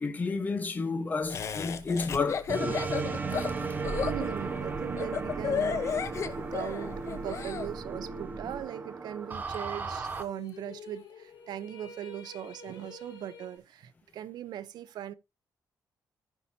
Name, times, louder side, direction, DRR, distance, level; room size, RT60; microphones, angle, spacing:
voice 1, 0.0-2.8, left 4 dB, 25° left, 1.1 m, -31 dB
Laughter, 1.3-7.7, left 7 dB, 45° left, 0.9 m, -33 dB
sound 1, 2.5-10.2, right 4 dB, 25° right, 1.0 m, -35 dB
sound 2, 3.7-8.0 8.4-8.5 9.7-13.6, left 4 dB, 75° left, 4.8 m, -52 dB
voice 2, 4.0-5.9 6.5-15.1, right 11 dB, 85° right, 0.7 m, -39 dB
14.5 x 5.4 x 2.7 m
wide cardioid pair, 170°, 7 cm